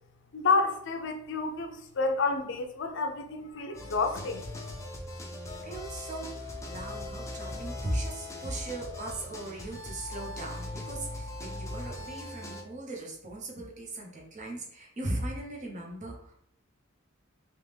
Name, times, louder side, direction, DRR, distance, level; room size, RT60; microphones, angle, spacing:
voice 1, 0.3-4.5, left 4 dB, 60° left, 0.5 m, -29 dB
sound 1, 3.7-12.6, left 2 dB, 15° left, 0.5 m, -40 dB
voice 2, 5.6-16.4, right 1 dB, 35° right, 0.9 m, -38 dB
3.4 x 3.1 x 3.3 m
head